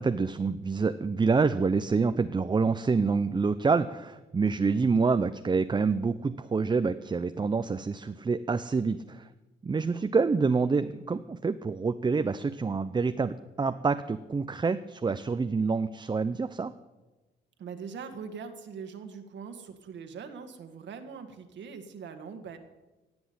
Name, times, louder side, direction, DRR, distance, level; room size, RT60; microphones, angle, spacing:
voice 1, 0.0-9.3 9.6-16.7, right 4 dB, 25° right, 10 dB, 0.6 m, -27 dB
voice 2, 17.6-22.6, right 6 dB, 65° right, 7 dB, 1.8 m, -42 dB
17.5 x 6.2 x 9.6 m, 1.1 s
cardioid pair, 90°, 20 cm